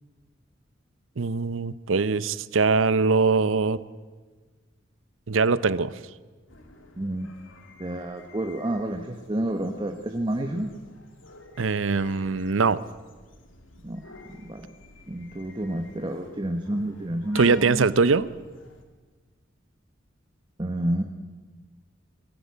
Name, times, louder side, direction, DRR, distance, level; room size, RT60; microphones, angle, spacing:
voice 1, 1.2-3.8 5.3-6.0 11.6-12.8 17.3-18.3, right 4 dB, 85° right, 17 dB, 0.7 m, -22 dB
sound 1, 6.5-18.8, left 2 dB, 85° left, 2.5 m, -49 dB
voice 2, 7.0-7.3 7.8-10.7 13.8-14.7 15.1-17.9 20.6-21.0, right 1 dB, 25° right, 4 dB, 1.1 m, -30 dB
20.5 x 15.5 x 8.4 m, 1.4 s
head